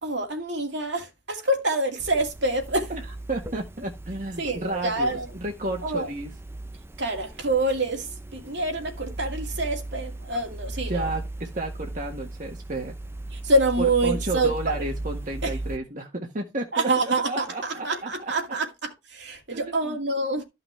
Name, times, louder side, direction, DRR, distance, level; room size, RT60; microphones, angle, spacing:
voice 1, 0.0-2.9 4.4-5.3 5.8-6.1 7.0-11.1 13.3-14.8 15.4-15.5 16.7-20.4, right 2 dB, 65° right, 2.3 m, -26 dB
sound 1, 2.0-15.8, right 2 dB, 15° right, 0.6 m, -37 dB
voice 2, 3.3-6.3 10.9-12.9 13.8-18.3 19.5-20.0, right 2 dB, 45° right, 1.6 m, -32 dB
13.5 x 5.9 x 3.4 m
head